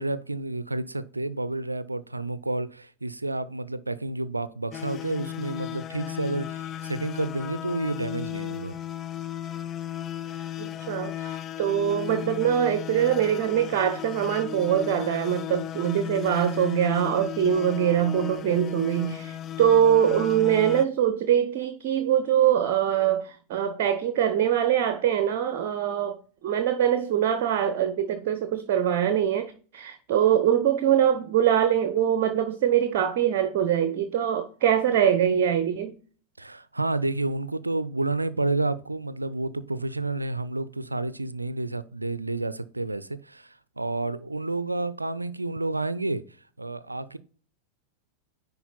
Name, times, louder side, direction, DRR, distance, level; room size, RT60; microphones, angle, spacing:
voice 1, 0.0-8.8 10.6-10.7 36.4-46.2 46.6-47.2, right 2 dB, 85° right, 0.5 m, -30 dB
sound 1, 4.7-20.8, left 11 dB, 30° left, 0.4 m, -35 dB
voice 2, 10.6-35.9, right 9 dB, 50° right, 0.8 m, -23 dB
10.0 x 4.0 x 4.1 m
figure-of-eight pair, 90°, 0 cm